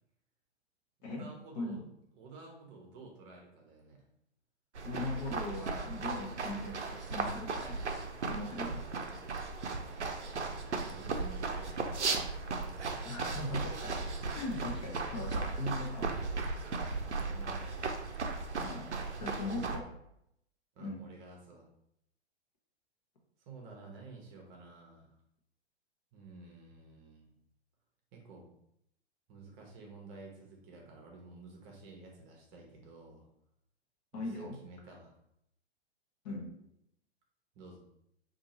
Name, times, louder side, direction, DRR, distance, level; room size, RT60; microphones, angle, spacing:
voice 1, 1.0-1.9 2.1-4.0 10.4-12.2 16.9-17.7 18.9-19.1 19.5-19.8 20.7-21.6 23.4-25.2 26.1-27.3 28.1-28.5 29.3-33.3 34.1-35.1 37.5-37.8, right 3 dB, 30° right, 0 dB, 0.8 m, -52 dB
voice 2, 1.5-1.8 4.8-7.8 8.3-8.8 13.0-13.9 14.3-16.1 18.6-18.9 19.2-19.8 20.8-21.0 34.1-34.6 36.2-36.5, left 2 dB, 40° left, 0 dB, 0.8 m, -39 dB
running forest snow, 4.8-19.8, right 4 dB, 85° right, 0.5 m, -36 dB
2.7 x 2.5 x 4.0 m, 0.76 s
figure-of-eight pair, 110°, 34 cm